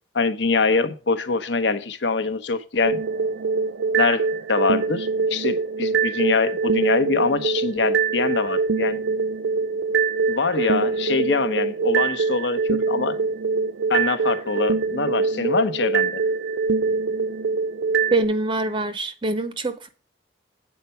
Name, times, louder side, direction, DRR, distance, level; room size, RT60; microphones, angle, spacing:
voice 1, 0.1-3.0 3.9-9.0 10.3-13.2 13.9-16.2, left 4 dB, 65° left, 0.9 m, -24 dB
sound 1, 2.8-18.2, right 4 dB, 70° right, 0.5 m, -24 dB
voice 2, 18.1-19.9, right 2 dB, 25° right, 0.6 m, -24 dB
8.2 x 4.5 x 5.5 m
head